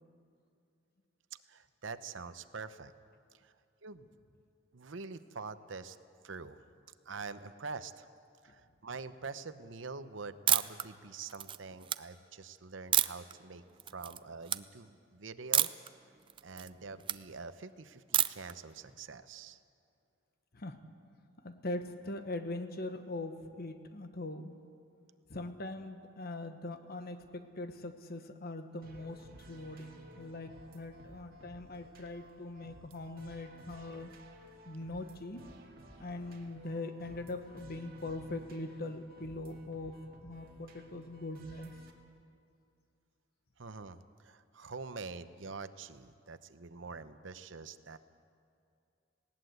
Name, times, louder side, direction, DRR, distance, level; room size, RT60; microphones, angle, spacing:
voice 1, 1.5-2.9 3.3-3.5 3.8-4.1 4.7-6.0 6.2-6.6 7.1-8.1 8.4-13.6 13.9-15.7 16.4-19.6 43.6-48.0, right 4 dB, 70° right, 12 dB, 0.8 m, -45 dB
sound 1, 10.5-10.8 11.3-12.0 12.9-13.3 13.8-14.2 14.4-14.6 15.5-15.9 16.3-17.2 18.1-18.5, right 10 dB, 25° right, 0.4 m, -29 dB
voice 2, 21.4-24.6 25.3-34.1 34.6-35.5 35.9-40.0 40.2-41.7, left 2 dB, 50° left, 8 dB, 1.2 m, -41 dB
sound 2, 28.8-41.9, equal, 50° right, 2.2 m, -55 dB
19.5 x 18.0 x 8.0 m, 2.5 s
head